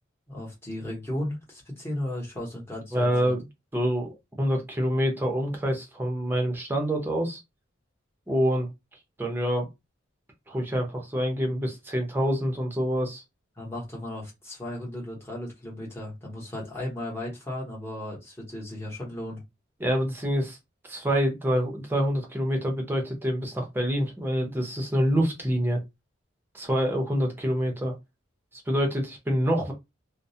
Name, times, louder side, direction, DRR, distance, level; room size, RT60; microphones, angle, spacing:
voice 1, 0.3-3.3 13.6-19.4, left 1 dB, 10° left, 0.9 m, -35 dB
voice 2, 2.9-3.4 3.7-7.4 8.3-8.7 9.2-9.7 10.5-13.2 19.8-20.6 20.9-25.8 26.5-27.9 28.5-29.7, equal, 10° right, 0.6 m, -26 dB
2.3 x 2.0 x 2.6 m
head